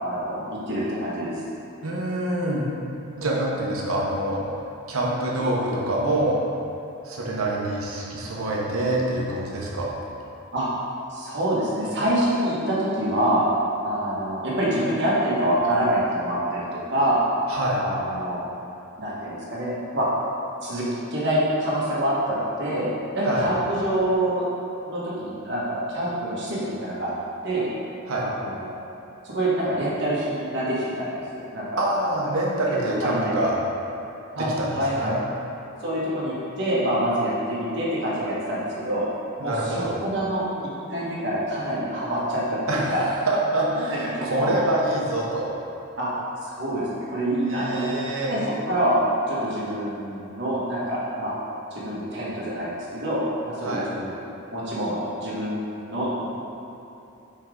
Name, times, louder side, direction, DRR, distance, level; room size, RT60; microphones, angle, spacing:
voice 1, 0.0-1.4 10.5-10.7 11.1-13.4 13.8-17.2 17.8-18.4 19.0-20.1 20.6-22.9 23.1-24.4 24.9-27.1 27.4-27.7 28.1-28.7 29.2-31.1 31.5-31.6 32.0-32.1 32.7-32.8 33.0-33.3 34.4-34.5 34.7-35.1 35.8-39.1 39.4-40.4 40.9-43.0 43.9-44.6 46.0-46.1 46.4-48.0 48.2-49.0 49.3-51.3 51.7-54.1 54.5-56.2, right 1 dB, 55° right, -8 dB, 1.5 m, -26 dB
voice 2, 1.8-2.7 3.2-4.4 4.9-6.4 7.0-9.9 17.5-17.8 23.3-23.5 28.1-28.2 31.8-33.6 34.3-35.2 39.4-39.9 42.7-45.5 47.4-48.3 53.6-53.9, right 1 dB, 85° right, -3 dB, 1.0 m, -26 dB
5.5 x 4.7 x 3.8 m, 2.9 s
head